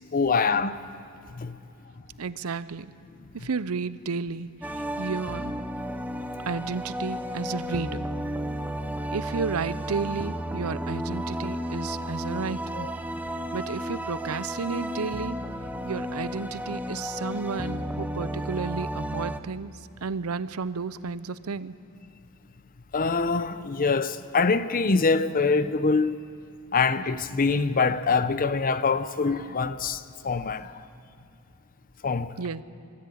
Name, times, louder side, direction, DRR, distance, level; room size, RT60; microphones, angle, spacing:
voice 1, 0.1-0.8 1.3-1.6 12.7-12.9 22.9-26.2 26.7-30.7 32.0-32.3, left 4 dB, 40° left, 0.7 m, -24 dB
voice 2, 2.2-2.9 3.3-5.5 6.5-8.1 9.1-12.9 13.5-15.4 15.8-21.7 32.4-32.6, right 5 dB, 75° right, 0.6 m, -32 dB
sound 1, 4.6-19.4, equal, 5° right, 0.7 m, -33 dB
24.5 x 14.0 x 8.5 m
head